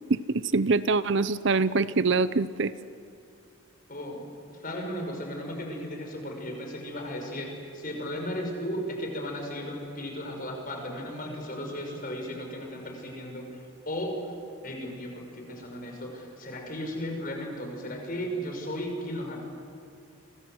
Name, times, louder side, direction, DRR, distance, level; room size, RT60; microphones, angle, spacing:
voice 1, 0.1-2.7, right 3 dB, 55° right, 15 dB, 0.7 m, -24 dB
voice 2, 3.9-14.1 14.6-19.4, equal, 40° left, 2 dB, 5.8 m, -35 dB
29.0 x 25.5 x 7.9 m, 2.5 s
head